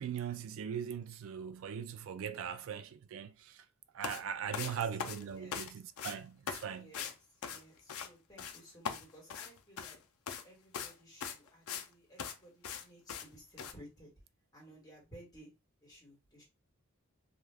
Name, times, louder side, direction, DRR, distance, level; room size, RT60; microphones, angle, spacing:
voice 1, 0.0-3.6 3.9-6.9, right 8 dB, 60° right, 0.3 m, -40 dB
Beating Carpet Rug Cleaning Hard Pack, 4.0-4.2 4.5-5.7 6.0-6.2 6.5-6.6 6.9-7.1 7.4-8.1 8.4-8.6 8.8-10.0 10.3-10.4 10.7-10.9 11.2-11.9 12.2-12.3 12.6-12.8 13.1-13.3 13.6-13.7, left 7 dB, 70° left, 0.4 m, -40 dB
voice 2, 4.4-4.8 5.2-5.6 6.7-7.2 7.4-10.0 10.4-14.1 14.5-15.5 15.8-16.4, equal, 15° left, 1.3 m, -56 dB
2.4 x 2.3 x 3.3 m
head